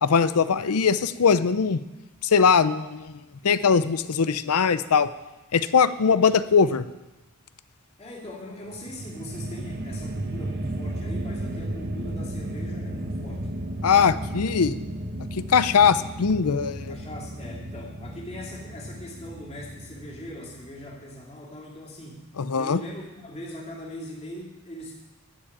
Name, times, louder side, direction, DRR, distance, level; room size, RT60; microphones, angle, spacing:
voice 1, 0.0-1.8 2.2-3.1 3.4-5.1 5.5-6.8 13.8-14.8 15.3-17.0 22.4-22.8, left 6 dB, 90° left, 14 dB, 0.6 m, -21 dB
voice 2, 8.0-13.5 16.9-22.3 22.6-24.9, left 1 dB, 30° left, -4 dB, 2.9 m, -40 dB
sound 1, 8.7-21.0, right 1 dB, 50° right, 1.0 m, -34 dB
12.0 x 7.2 x 8.8 m, 1.0 s
head